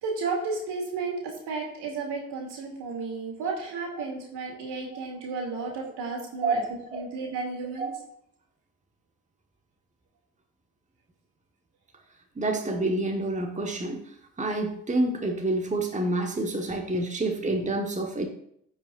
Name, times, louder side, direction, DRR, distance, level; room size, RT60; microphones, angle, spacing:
voice 1, 0.0-6.6 6.9-7.9, right 4 dB, 65° right, -1 dB, 2.7 m, -33 dB
voice 2, 6.4-7.0 7.7-7.9 12.3-14.0 14.4-18.3, right 2 dB, 15° right, 3 dB, 1.4 m, -28 dB
16.0 x 5.5 x 2.6 m, 0.70 s
hypercardioid pair, 45°, 43 cm